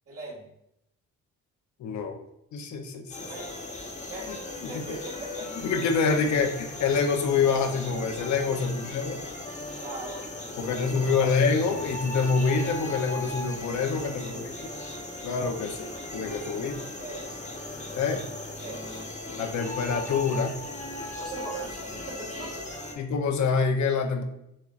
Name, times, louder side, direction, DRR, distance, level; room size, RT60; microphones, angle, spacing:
voice 1, 0.1-0.5 3.2-3.5 4.1-5.5 8.4-8.7 9.7-11.3 13.9-14.8 16.1-17.4 18.6-19.0 21.1-22.8, right 2 dB, 50° right, -2 dB, 1.8 m, -41 dB
voice 2, 1.8-2.2 2.5-3.1 4.6-4.8 5.6-9.2 10.6-14.7 15.2-16.7 17.9-18.2 19.4-20.6 23.0-24.2, left 5 dB, 70° left, 5 dB, 0.7 m, -26 dB
sound 1, 3.1-22.9, left 2 dB, 25° left, 1.1 m, -37 dB
7.2 x 3.0 x 2.4 m, 0.80 s
cardioid pair, 90°, 30 cm